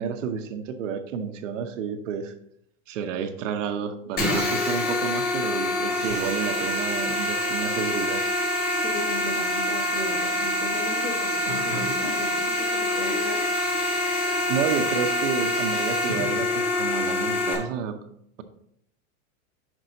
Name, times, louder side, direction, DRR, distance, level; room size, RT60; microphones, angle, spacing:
voice 1, 0.0-2.3 2.9-8.2 14.5-18.0, right 7 dB, 65° right, 7 dB, 0.9 m, -30 dB
sound 1, 4.2-17.5, left 1 dB, 25° left, 1.3 m, -26 dB
voice 2, 8.8-13.4, left 2 dB, 50° left, 2 dB, 1.7 m, -36 dB
6.1 x 5.3 x 3.9 m, 0.73 s
supercardioid pair, 160°, 40 cm